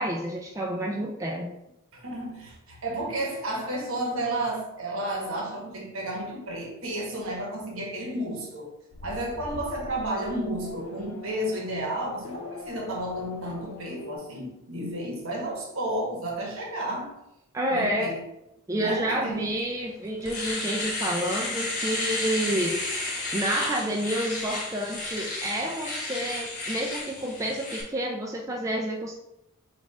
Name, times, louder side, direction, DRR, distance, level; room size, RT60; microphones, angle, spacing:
voice 1, 0.0-1.5 17.5-18.2 18.7-29.1, right 1 dB, 15° right, -1 dB, 0.3 m, -29 dB
voice 2, 1.9-8.7 9.0-17.1 17.7-18.2 18.8-19.5, right 1 dB, 65° right, -1 dB, 1.2 m, -32 dB
Race car auto racing / Accelerating revving vroom, 8.9-14.2, left 4 dB, 70° left, 0.5 m, -42 dB
Domestic sounds home sounds, 19.6-19.7 20.1-27.8, left 2 dB, 35° left, 1.0 m, -32 dB
4.0 x 2.4 x 4.7 m, 0.87 s
head